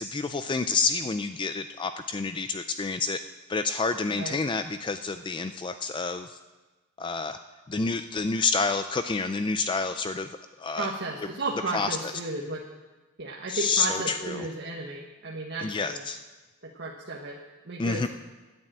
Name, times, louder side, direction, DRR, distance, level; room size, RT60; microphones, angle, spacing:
voice 1, 0.0-3.2 3.5-6.4 7.0-7.4 7.7-10.3 10.6-10.9 11.7-12.1 13.5-14.5 15.6-16.2 17.8-18.1, left 4 dB, 20° left, 10 dB, 0.3 m, -28 dB
voice 2, 10.8-12.6 13.2-16.0 16.7-17.4 17.6-18.0, right 2 dB, 50° right, -2 dB, 1.3 m, -34 dB
10.5 x 9.0 x 8.7 m, 1.2 s
head